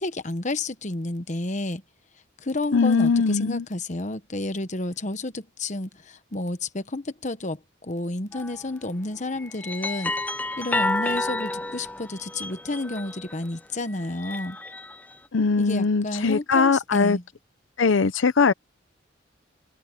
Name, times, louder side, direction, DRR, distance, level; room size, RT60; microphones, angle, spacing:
voice 1, 0.0-1.8 2.4-10.1 10.6-14.6 15.6-17.2, left 2 dB, 40° left, 1.1 m, -31 dB
voice 2, 2.7-3.6 15.3-17.2 17.8-18.5, left 4 dB, 75° left, 0.7 m, -21 dB
sound 1, 8.3-8.6 9.3-13.4 14.0-15.1, left 2 dB, 10° left, 0.4 m, -30 dB
open air
head